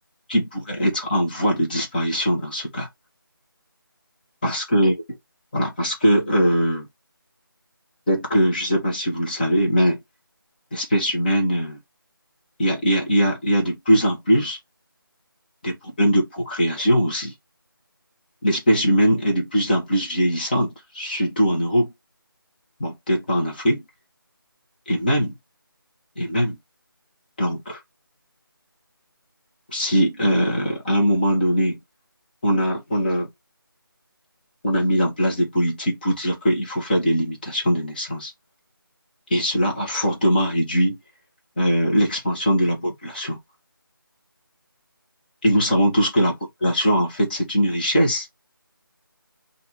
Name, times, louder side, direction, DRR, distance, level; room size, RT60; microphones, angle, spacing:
voice 1, 0.3-2.9 4.4-4.9 5.5-6.9 8.1-10.0 10.7-11.8 12.6-14.6 15.6-17.3 18.4-21.9 22.8-23.8 24.9-25.4 26.1-26.6 27.4-27.8 29.7-31.8 32.4-33.3 34.6-38.3 39.3-41.0 41.6-43.4 45.4-46.3 46.6-48.3, equal, 25° left, 1.5 m, -21 dB
3.8 x 2.8 x 4.3 m
figure-of-eight pair, 165°, 12 cm